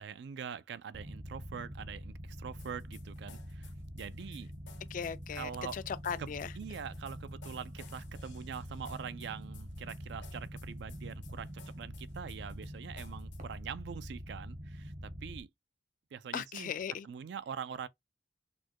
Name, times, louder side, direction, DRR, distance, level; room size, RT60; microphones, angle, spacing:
voice 1, 0.0-4.5 5.3-5.8 6.2-11.5 11.8-15.5 16.1-16.7 17.0-17.9, right 7 dB, 65° right, 0.3 m, -44 dB
sound 1, 0.9-15.4, equal, 50° right, 0.9 m, -45 dB
sound 2, 2.6-13.6, left 5 dB, 80° left, 0.8 m, -57 dB
voice 2, 4.9-6.5 16.3-17.1, left 7 dB, 45° left, 0.3 m, -38 dB
4.2 x 2.1 x 2.9 m
head